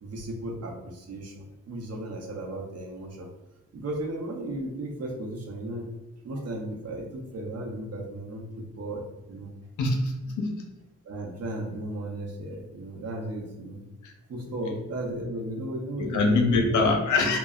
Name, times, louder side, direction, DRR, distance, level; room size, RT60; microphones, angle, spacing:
voice 1, 0.0-3.3 3.7-5.9 6.2-9.5 11.0-13.8 14.3-17.0, right 1 dB, 55° right, 0 dB, 0.7 m, -35 dB
voice 2, 9.8-10.6 14.0-14.1 16.1-17.4, left 3 dB, 80° left, 3 dB, 0.6 m, -24 dB
2.2 x 2.0 x 3.6 m, 1.0 s
cardioid pair, 80°, 30 cm